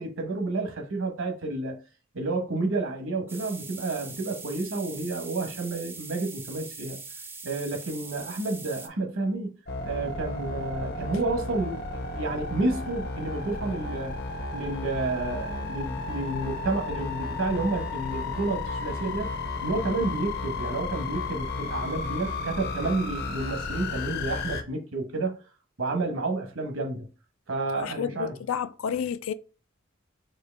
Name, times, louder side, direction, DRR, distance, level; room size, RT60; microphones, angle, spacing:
voice 1, 0.0-1.8 2.1-7.0 7.4-9.5 9.8-14.2 14.5-19.3 19.6-25.4 25.8-27.1 27.5-28.3, right 2 dB, 70° right, 1.1 m, -30 dB
sound 1, 3.3-8.9, right 4 dB, 10° right, 0.3 m, -42 dB
sound 2, 9.7-24.6, left 3 dB, 50° left, 0.7 m, -33 dB
voice 2, 27.8-29.3, left 8 dB, 80° left, 0.4 m, -30 dB
4.6 x 2.9 x 3.3 m
head